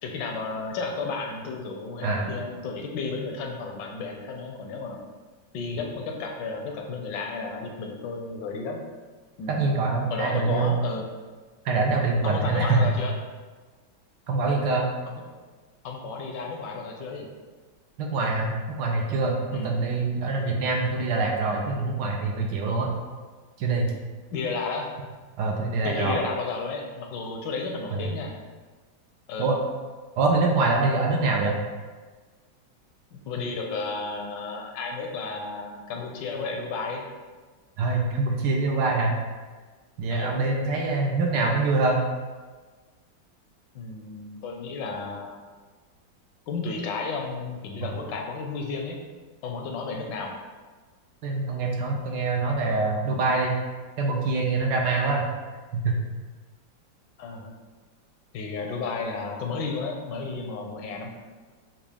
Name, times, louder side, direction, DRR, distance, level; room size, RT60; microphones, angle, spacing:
voice 1, 0.0-5.0 5.5-8.8 9.4-9.6 10.1-11.0 12.2-13.1 15.1-15.3 15.8-17.3 19.5-19.7 24.3-24.9 25.8-28.3 29.3-29.5 33.1-37.0 40.1-40.4 43.7-45.4 46.5-49.0 49.4-50.4 57.2-57.5 58.3-61.1, left 4 dB, 75° left, 1 dB, 1.2 m, -33 dB
voice 2, 9.5-10.8 11.6-12.9 14.3-14.9 18.0-22.9 23.6-23.9 25.4-26.2 27.9-28.0 29.4-29.6 30.2-31.6 37.8-39.1 40.0-42.0 47.8-47.9 51.2-53.6 54.0-55.3 55.7-56.0, right 3 dB, 75° right, 0 dB, 1.2 m, -24 dB
5.9 x 2.3 x 3.4 m, 1.4 s
omnidirectional pair, 2.1 m